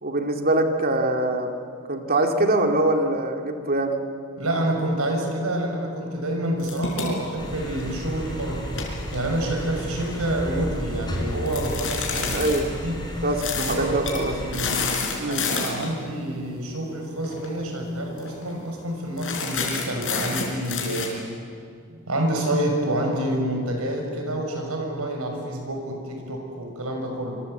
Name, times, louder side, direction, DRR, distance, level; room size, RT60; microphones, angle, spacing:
voice 1, 0.0-1.6 1.9-4.0 12.1-12.8 13.2-14.3 15.2-15.4, right 2 dB, 45° right, 4 dB, 2.4 m, -23 dB
voice 2, 4.4-8.6 9.1-12.4 12.8-13.0 13.5-14.8 15.3-21.2 21.9-27.4, right 1 dB, 75° right, 2 dB, 6.0 m, -28 dB
sound 1, 6.6-8.1 8.6-10.2 11.5-12.6 13.4-13.8 14.0-14.2 14.5-15.9 17.2-17.5 17.8-17.9 18.2-18.5 19.2-21.1, left 5 dB, 60° left, 5.1 m, -29 dB
sound 2, 7.4-14.7, equal, 20° left, 4.3 m, -33 dB
25.5 x 25.5 x 7.9 m, 2.2 s
head